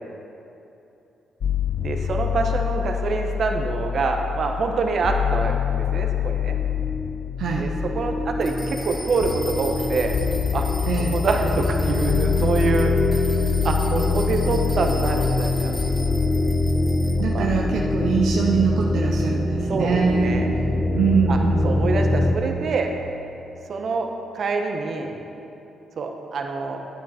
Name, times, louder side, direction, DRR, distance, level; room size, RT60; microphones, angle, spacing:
sound 1, 1.4-19.4, left 9 dB, 65° left, 0.4 m, -27 dB
voice 1, 1.8-6.6 7.6-10.2 10.5-10.7 11.1-16.3 17.3-17.5 19.7-20.5 21.3-21.4 21.6-22.9 23.7-24.1 24.3-25.2 26.0-26.8, right 4 dB, 55° right, 3 dB, 1.1 m, -26 dB
sound 2, 6.4-22.4, left 1 dB, 30° left, 0.9 m, -25 dB
sound 3, 8.4-17.1, left 1 dB, 15° left, 2.5 m, -39 dB
voice 2, 10.9-11.2 17.2-20.4 20.9-21.7, right 6 dB, 80° right, -1 dB, 0.7 m, -23 dB
10.0 x 9.2 x 4.3 m, 2.9 s
cardioid pair, 90°, 0 cm